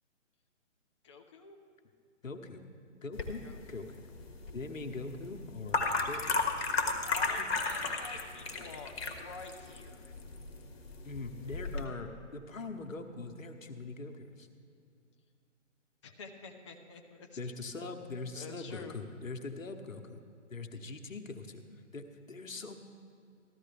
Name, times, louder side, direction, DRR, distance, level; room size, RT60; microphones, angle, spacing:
voice 1, 1.0-1.6 3.4-3.8 7.0-10.1 16.0-17.6 18.3-19.0, left 4 dB, 25° left, 3 dB, 0.5 m, -49 dB
voice 2, 2.2-2.6 3.0-4.0 4.5-6.6 7.4-7.5 11.0-14.5 17.4-20.2 20.5-21.6 21.9-22.8, left 3 dB, 90° left, 5 dB, 1.1 m, -42 dB
sound 1, 3.1-11.8, left 3 dB, 50° left, 1.4 m, -35 dB
14.5 x 12.5 x 3.4 m, 2.5 s
figure-of-eight pair, 140°, 38 cm